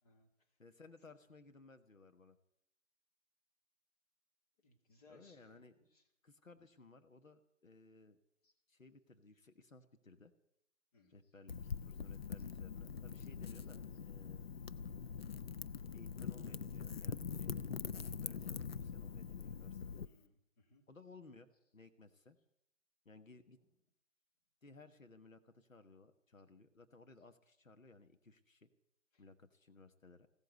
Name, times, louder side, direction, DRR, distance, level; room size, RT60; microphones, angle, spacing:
voice 1, 0.6-2.4 5.1-5.7 6.2-8.2 8.7-10.3 11.1-14.4 15.9-17.7 17.9-20.1 20.9-22.4 23.0-23.6 24.6-28.7 29.2-30.3, left 3 dB, 85° left, 8 dB, 1.4 m, -60 dB
voice 2, 4.6-6.0 8.4-8.5 10.9-11.2 20.0-20.8 29.1-29.2, left 3 dB, 30° left, 3 dB, 2.0 m, -67 dB
Wind / Fire, 11.5-20.1, left 6 dB, 50° left, 0.5 m, -43 dB
16.0 x 8.3 x 9.4 m, 0.77 s
figure-of-eight pair, 150°, 39 cm